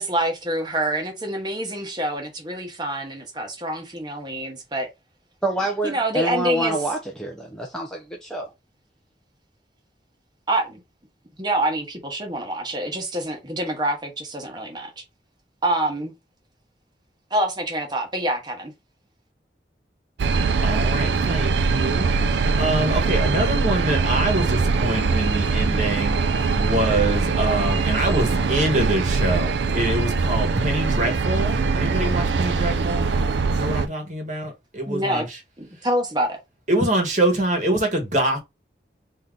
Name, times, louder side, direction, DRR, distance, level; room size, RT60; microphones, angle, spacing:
voice 1, 0.0-4.9 5.8-6.8 10.5-10.8 11.4-15.0 15.6-16.1 17.3-18.7 34.9-35.2 35.6-36.4, right 1 dB, 25° right, 1.2 m, -26 dB
voice 2, 5.4-8.5, right 1 dB, 5° left, 0.5 m, -27 dB
sound 1, 20.2-33.9, right 4 dB, 80° right, 0.4 m, -22 dB
voice 3, 20.6-26.2 26.5-33.1 33.5-35.3 36.7-38.4, right 1 dB, 45° right, 1.3 m, -25 dB
3.6 x 2.8 x 3.7 m
head